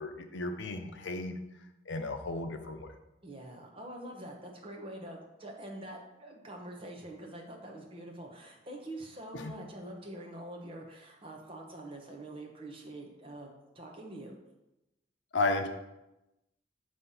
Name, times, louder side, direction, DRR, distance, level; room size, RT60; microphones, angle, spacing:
voice 1, 0.0-1.4 1.9-2.9 9.3-9.6 15.3-15.7, left 2 dB, 75° left, 6 dB, 0.7 m, -33 dB
voice 2, 3.2-14.4, right 1 dB, 30° right, 1 dB, 1.0 m, -45 dB
7.3 x 3.4 x 5.5 m, 0.94 s
head